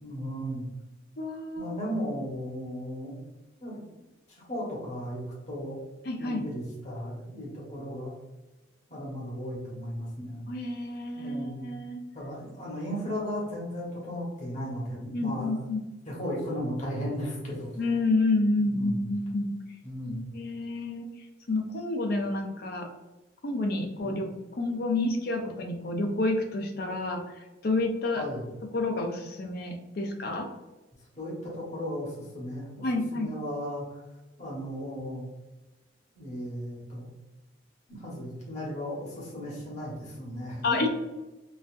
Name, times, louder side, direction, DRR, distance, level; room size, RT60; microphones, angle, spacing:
voice 1, 0.0-0.6 1.6-3.2 3.6-3.7 4.3-5.2 5.5-5.8 6.2-8.1 8.9-10.4 11.1-11.7 12.1-15.5 16.0-17.7 18.6-19.0 19.8-20.2 24.0-24.1 28.2-28.4 31.2-32.9 33.1-34.0 34.4-35.2 36.1-37.1 37.9-40.9, equal, 35° left, -5 dB, 1.1 m, -35 dB
voice 2, 1.2-1.7 6.1-6.4 10.5-12.0 15.1-15.8 17.8-19.5 20.1-21.1 21.5-22.9 23.4-24.3 24.5-28.2 28.7-30.5 32.8-33.3 40.6-40.9, left 2 dB, 55° left, 4 dB, 0.4 m, -29 dB
4.0 x 2.5 x 2.4 m, 1.1 s
head